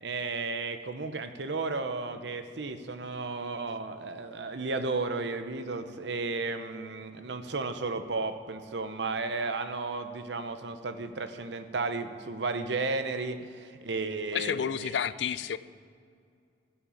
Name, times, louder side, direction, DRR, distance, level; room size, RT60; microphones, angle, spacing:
voice 1, 0.0-14.9, right 3 dB, 75° right, 9 dB, 0.8 m, -33 dB
voice 2, 14.3-15.6, left 8 dB, 75° left, 16 dB, 0.4 m, -30 dB
15.5 x 5.9 x 7.1 m, 2.3 s
head